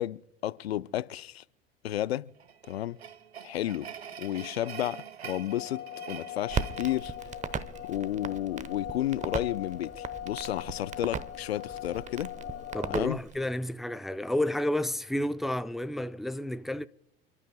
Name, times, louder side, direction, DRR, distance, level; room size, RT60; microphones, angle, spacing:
voice 1, 0.0-1.4 1.8-2.3 2.7-3.0 3.4-3.9 4.2-7.1 7.8-12.3 12.9-13.2, left 13 dB, 80° left, 0.5 m, -32 dB
sound 1, 2.4-7.9, right 8 dB, 90° right, 0.8 m, -45 dB
sound 2, 5.5-13.0, left 12 dB, 35° left, 0.9 m, -41 dB
Crackle, 6.5-13.4, right 6 dB, 25° right, 0.9 m, -38 dB
voice 2, 12.7-16.9, left 1 dB, ahead, 0.4 m, -31 dB
29.5 x 12.5 x 2.2 m
hypercardioid pair, 75°, 31 cm